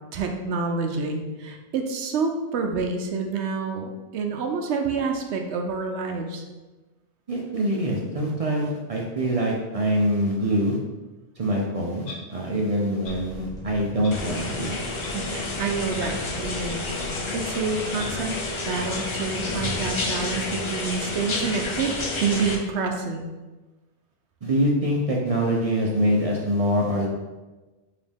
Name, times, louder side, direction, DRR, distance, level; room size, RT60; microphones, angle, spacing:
voice 1, 0.1-6.4 15.1-18.4 18.7-21.9 22.2-23.2, right 4 dB, 70° right, 4 dB, 0.8 m, -28 dB
voice 2, 7.3-10.8 11.4-14.7 24.4-27.1, equal, 50° right, -1 dB, 0.4 m, -24 dB
Clock, 12.0-12.2 13.0-13.2 14.0-14.1 15.0-15.1 16.0-16.1 17.0-17.1 18.0-18.1 19.0-19.1, left 3 dB, 90° left, 1.3 m, -40 dB
sound 1, 13.1-19.7, equal, 5° left, 0.6 m, -40 dB
sound 2, 14.1-22.6, left 3 dB, 50° left, 0.3 m, -30 dB
5.1 x 2.8 x 3.4 m, 1.2 s
omnidirectional pair, 1.2 m